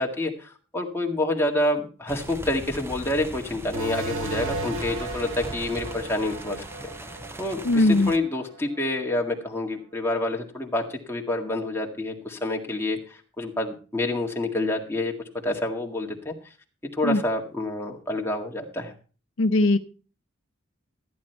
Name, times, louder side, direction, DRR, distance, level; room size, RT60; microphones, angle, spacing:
voice 1, 0.0-6.7 7.4-15.1 15.4-16.3 16.9-18.9, left 1 dB, 10° left, 1 dB, 1.9 m, -28 dB
sound 1, 2.1-8.2, right 1 dB, 10° right, 0.8 m, -39 dB
sound 2, 3.7-8.9, right 3 dB, 80° right, 1.7 m, -36 dB
voice 2, 7.6-8.1 17.0-17.2 19.4-19.8, left 2 dB, 70° left, 9 dB, 0.7 m, -19 dB
14.5 x 9.5 x 4.5 m, 0.38 s
head